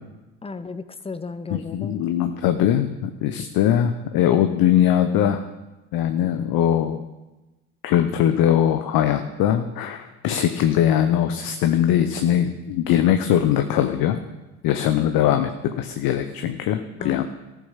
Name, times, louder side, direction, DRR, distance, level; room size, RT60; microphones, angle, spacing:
voice 1, 0.4-2.0 17.0-17.2, left 4 dB, 15° left, 13 dB, 0.8 m, -34 dB
voice 2, 1.5-5.5 5.9-7.0 7.8-14.2 14.6-17.2, left 10 dB, 55° left, 8 dB, 0.9 m, -21 dB
14.5 x 7.3 x 5.8 m, 1.1 s
hypercardioid pair, 65°, 42 cm